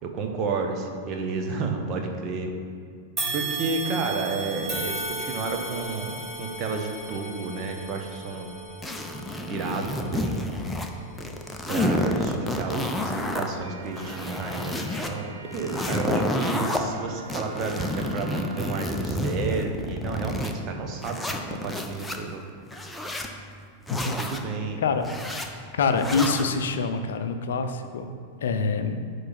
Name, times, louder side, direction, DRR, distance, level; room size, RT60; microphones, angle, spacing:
voice 1, 0.0-2.5 3.3-8.5 9.5-10.4 11.7-14.7 15.1-17.9 18.1-22.4 24.1-24.8, right 4 dB, 35° right, 3 dB, 1.0 m, -31 dB
sound 1, 3.2-12.5 13.0-13.2 14.1-14.2, right 2 dB, 15° right, 1.8 m, -36 dB
sound 2, 8.8-10.9 11.2-13.5 13.9-15.1 15.5-16.8 17.3-20.5 21.0-22.2 22.7-23.3 23.9-24.4 25.0-25.5 26.0-26.5, left 1 dB, 5° left, 0.7 m, -29 dB
sound 3, 13.4-19.0, right 4 dB, 70° right, 0.6 m, -45 dB
voice 2, 24.8-25.1 25.7-28.1 28.4-29.1, left 4 dB, 60° left, 8 dB, 0.6 m, -25 dB
9.8 x 3.3 x 6.0 m, 2.2 s
figure-of-eight pair, 90°, 0 cm